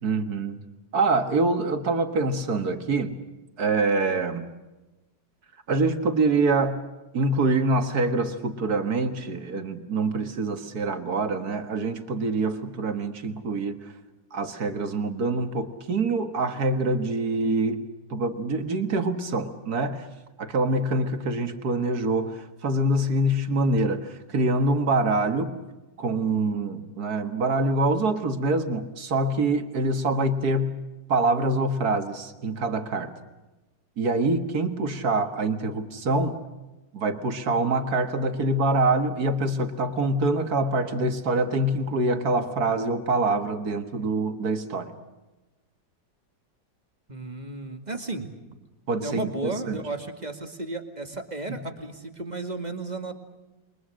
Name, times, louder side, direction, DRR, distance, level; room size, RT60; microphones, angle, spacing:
voice 1, 0.0-0.6 0.9-3.1 3.6-4.5 5.7-6.8 7.1-13.9 14.3-17.8 18.1-20.1 20.4-25.5 26.0-30.7 31.1-33.1 34.0-36.4 36.9-44.9 48.9-49.8 51.5-51.6, right 2 dB, 55° right, 8 dB, 2.1 m, -25 dB
voice 2, 47.1-48.3 49.0-53.1, right 2 dB, 25° right, 6 dB, 2.2 m, -34 dB
28.5 x 23.5 x 6.4 m, 1.1 s
omnidirectional pair, 2.0 m